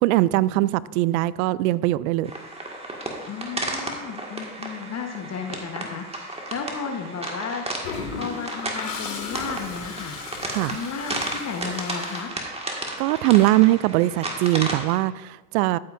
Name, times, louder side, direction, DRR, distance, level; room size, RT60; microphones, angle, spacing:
voice 1, 0.0-2.3 10.5-10.8 13.0-15.8, right 17 dB, 65° right, 0.5 m, -21 dB
sound 1, 2.3-15.0, right 2 dB, 10° right, 1.8 m, -33 dB
voice 2, 3.3-12.3, left 5 dB, 35° left, 1.1 m, -34 dB
Toilet flush, 7.8-12.9, left 5 dB, 70° left, 2.1 m, -36 dB
14.0 x 8.4 x 2.6 m
hypercardioid pair, 75°, 48 cm